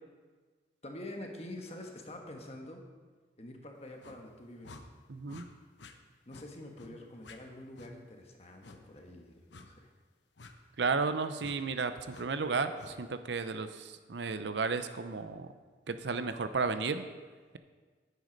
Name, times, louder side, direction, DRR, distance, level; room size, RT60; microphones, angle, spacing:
voice 1, 0.8-2.8 3.4-4.8 6.3-9.9, left 1 dB, 35° left, 2 dB, 1.3 m, -46 dB
sound 1, 4.0-4.2 4.6-4.8 5.3-5.5 5.8-5.9 6.3-6.5 6.8-6.9 7.2-7.4 7.7-7.9 8.6-8.8 9.5-9.7 10.4-10.5 11.4-11.6 12.1-12.3 12.7-12.9, left 3 dB, 75° left, 0.9 m, -51 dB
voice 2, 5.1-5.4 10.8-15.5 15.9-17.0, right 4 dB, 70° right, 10 dB, 0.6 m, -33 dB
9.5 x 9.2 x 5.2 m, 1.4 s
head